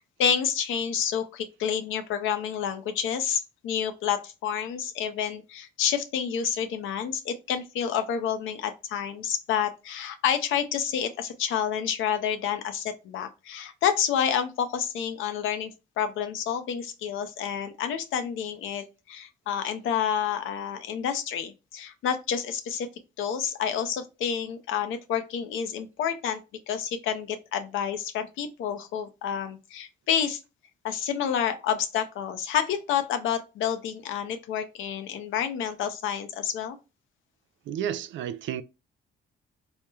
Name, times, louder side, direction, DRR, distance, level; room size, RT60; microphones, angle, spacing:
voice 1, 0.0-15.7 16.0-22.9 23.2-26.4 26.7-30.4 30.8-36.8, left 8 dB, 80° left, 0.5 m, -29 dB
voice 2, 37.7-38.6, right 10 dB, 70° right, 0.4 m, -31 dB
3.0 x 2.1 x 2.2 m
cardioid pair, 90°, 20 cm